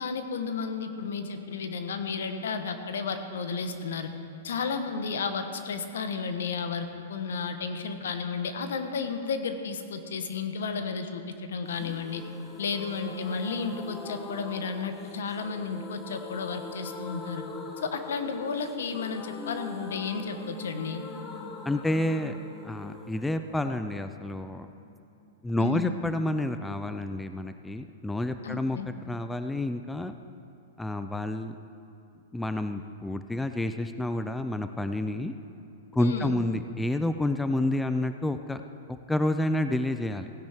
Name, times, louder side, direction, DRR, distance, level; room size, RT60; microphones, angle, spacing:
voice 1, 0.0-4.1 4.4-12.2 12.6-17.4 17.8-21.0 25.6-26.0 28.4-28.9 36.0-36.4, left 5 dB, 75° left, 8 dB, 1.0 m, -33 dB
sound 1, 11.7-25.3 25.6-25.7 25.9-26.0, left 3 dB, 20° left, 0.9 m, -43 dB
voice 2, 21.7-22.4 22.6-24.7 25.4-28.8 29.1-30.1 30.8-31.5 32.3-35.3 35.9-38.6 38.9-40.3, left 1 dB, 5° left, 9 dB, 0.4 m, -29 dB
16.5 x 10.5 x 3.6 m, 2.7 s
hypercardioid pair, 130°, 0 cm